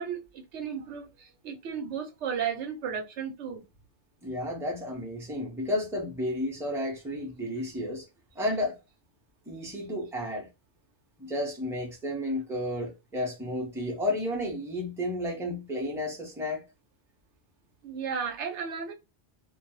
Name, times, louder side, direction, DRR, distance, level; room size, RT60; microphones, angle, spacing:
voice 1, 0.0-3.6 17.8-18.9, right 7 dB, 85° right, 1.0 m, -34 dB
voice 2, 4.2-8.0 8.4-8.8 9.5-10.5 11.2-16.6, left 1 dB, 5° right, 0.6 m, -32 dB
2.2 x 2.0 x 2.9 m
omnidirectional pair, 1.1 m